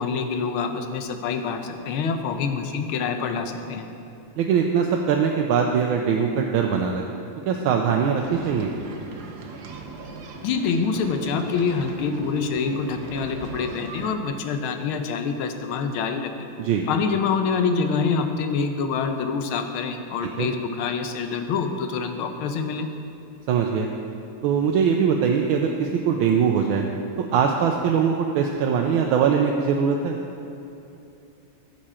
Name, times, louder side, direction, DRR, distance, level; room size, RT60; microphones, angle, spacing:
voice 1, 0.0-3.9 10.4-16.5 16.9-22.9, left 5 dB, 85° left, 6 dB, 1.6 m, -26 dB
voice 2, 4.4-7.1 7.5-8.7 16.6-16.9 20.4-20.5 23.5-23.9 24.4-26.8 27.2-30.2, right 7 dB, 80° right, 1 dB, 1.4 m, -22 dB
sound 1, 8.1-14.1, right 4 dB, 60° right, 1.2 m, -39 dB
14.5 x 6.3 x 4.3 m, 2.8 s
omnidirectional pair, 2.3 m